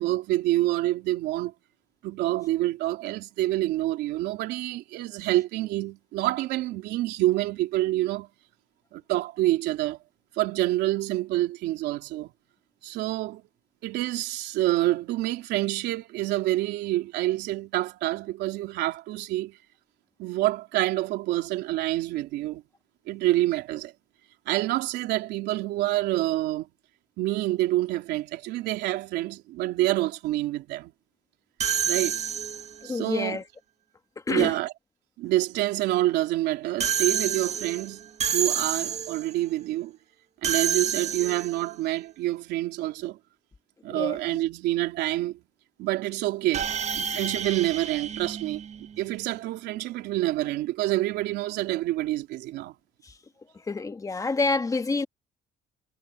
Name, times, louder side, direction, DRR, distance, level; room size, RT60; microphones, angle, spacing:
voice 1, 0.0-1.5 2.0-8.3 8.9-10.0 10.3-12.3 12.8-13.4 13.8-19.6 20.2-22.6 23.1-23.9 24.5-26.7 27.2-30.9 31.8-32.2 32.8-33.4 34.3-34.7 35.2-40.0 40.4-43.2 43.8-45.4 45.8-46.7 46.9-48.6 49.0-52.7, right 16 dB, 85° right, 3.5 m, -27 dB
sound 1, 31.6-32.9 36.8-39.3 40.4-41.7 46.5-49.1, right 8 dB, 40° right, 1.7 m, -29 dB
voice 2, 32.8-33.4 34.3-34.5 43.9-44.2 53.7-55.1, left 3 dB, 20° left, 1.5 m, -27 dB
cardioid pair, 110°, 17 cm